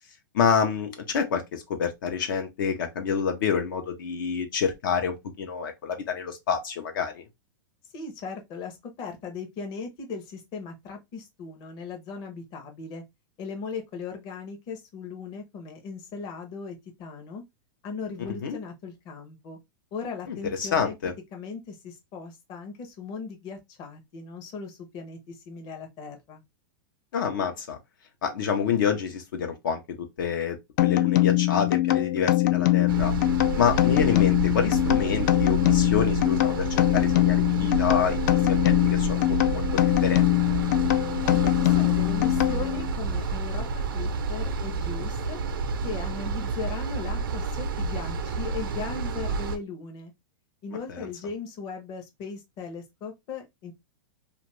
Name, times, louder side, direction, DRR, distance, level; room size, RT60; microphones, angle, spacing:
voice 1, 0.3-7.2 18.4-18.6 20.3-21.1 27.1-27.8 28.2-33.1 33.6-36.6 36.9-38.2 38.5-40.2 50.9-51.1, left 6 dB, 75° left, 0.8 m, -28 dB
voice 2, 7.9-13.0 13.4-17.4 17.8-19.6 19.9-20.9 21.3-26.4 41.2-45.4 45.8-50.1 50.6-53.7, left 5 dB, 35° left, 0.8 m, -38 dB
sound 1, 30.8-42.9, left 18 dB, 55° left, 0.4 m, -23 dB
sound 2, 32.9-49.6, right 4 dB, 85° right, 0.6 m, -30 dB
2.6 x 2.5 x 3.1 m
supercardioid pair, 150°, 11 cm